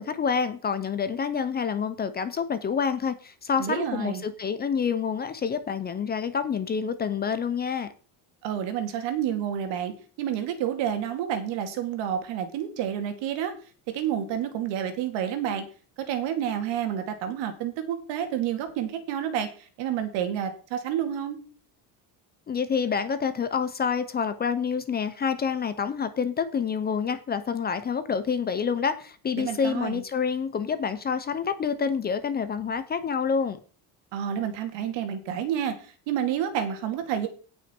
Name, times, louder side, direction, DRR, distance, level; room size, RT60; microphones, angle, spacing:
voice 1, 0.0-7.9 22.5-33.6, left 6 dB, 20° left, 12 dB, 0.6 m, -28 dB
voice 2, 3.6-4.3 8.4-13.5 13.9-15.6 16.0-19.5 19.8-21.4 29.4-30.0 34.1-35.8 36.1-37.3, right 9 dB, 75° right, 7 dB, 2.4 m, -29 dB
17.0 x 6.1 x 4.4 m, 0.40 s
cardioid pair, 175°, 45 cm